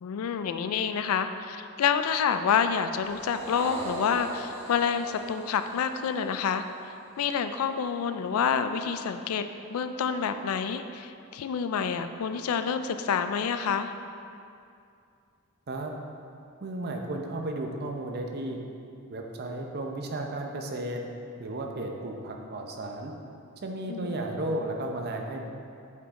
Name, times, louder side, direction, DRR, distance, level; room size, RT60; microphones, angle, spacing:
voice 1, 0.0-13.9 23.9-24.2, left 7 dB, 80° left, 9 dB, 0.4 m, -28 dB
sound 1, 2.9-7.5, right 1 dB, 30° right, 1.6 m, -41 dB
voice 2, 16.6-18.6 19.1-21.0 21.4-23.1 23.6-25.5, right 1 dB, 50° right, 2 dB, 0.7 m, -34 dB
8.1 x 5.0 x 3.7 m, 2.5 s
head